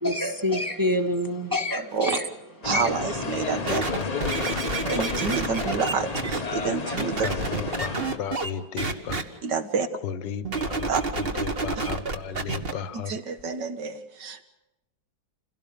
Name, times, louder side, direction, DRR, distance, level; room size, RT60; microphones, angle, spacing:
voice 1, 0.0-2.2 2.7-2.9, left 1 dB, 10° right, 3 dB, 1.2 m, -26 dB
voice 2, 1.8-2.2 2.6-3.8 4.9-7.3 9.4-9.9 10.9-11.0 12.9-14.4, right 5 dB, 60° right, 9 dB, 2.1 m, -28 dB
sound 1, 2.6-8.2, left 4 dB, 30° left, 0.7 m, -31 dB
voice 3, 3.7-4.6 7.2-9.2 10.0-10.9 11.2-13.1, left 7 dB, 65° left, 14 dB, 1.7 m, -34 dB
sound 2, 3.7-6.4 7.0-8.5 8.8-9.2 10.4-12.7 13.4-13.5, right 3 dB, 30° right, 1.5 m, -29 dB
28.0 x 17.0 x 7.0 m, 0.97 s
omnidirectional pair, 2.1 m